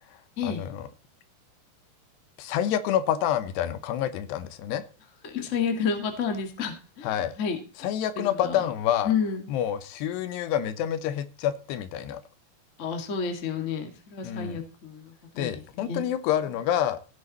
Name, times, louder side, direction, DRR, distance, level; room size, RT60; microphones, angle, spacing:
voice 1, 0.4-0.9 2.4-4.8 7.0-7.3 7.8-9.1 9.5-12.2 14.2-14.6 15.4-17.0, left 10 dB, 85° left, 12 dB, 3.1 m, -28 dB
voice 2, 5.2-8.7 9.0-9.5 12.8-16.1, left 6 dB, 35° left, 5 dB, 1.1 m, -31 dB
16.5 x 7.4 x 4.2 m, 0.37 s
omnidirectional pair, 4.8 m